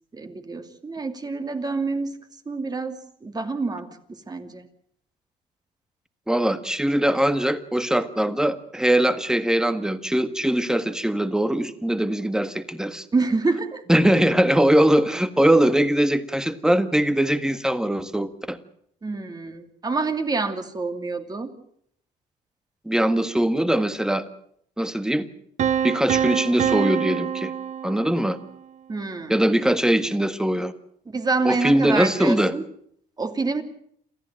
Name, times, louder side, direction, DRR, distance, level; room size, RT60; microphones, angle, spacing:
voice 1, 0.1-2.1 2.5-4.7 13.1-13.8 19.0-21.5 28.9-29.4 31.1-32.6 33.2-33.6, right 3 dB, 25° right, 7 dB, 2.7 m, -27 dB
voice 2, 6.3-13.0 13.9-18.6 22.9-24.2 24.8-25.3 25.8-27.5 27.8-28.4 29.3-30.7 31.5-32.5, right 1 dB, 5° right, 11 dB, 1.7 m, -21 dB
Piano, 25.6-28.5, right 9 dB, 45° right, 0.9 m, -25 dB
28.5 x 14.0 x 9.0 m, 0.69 s
cardioid pair, 110°, 17 cm